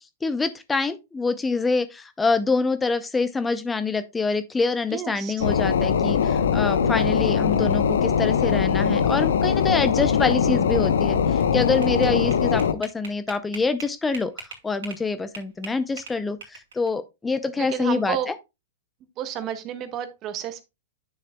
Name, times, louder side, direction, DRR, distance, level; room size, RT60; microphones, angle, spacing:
voice 1, 0.0-18.3, left 4 dB, 15° left, 0.6 m, -26 dB
voice 2, 4.9-5.5 12.0-12.2 17.6-18.3 19.2-20.6, right 10 dB, 35° right, 1.3 m, -31 dB
sound 1, 5.4-12.7, left 7 dB, 80° left, 0.9 m, -21 dB
sound 2, 11.2-15.0 15.3-16.9, right 5 dB, 75° right, 2.4 m, -40 dB
9.4 x 6.5 x 2.3 m
hypercardioid pair, 110°, 0 cm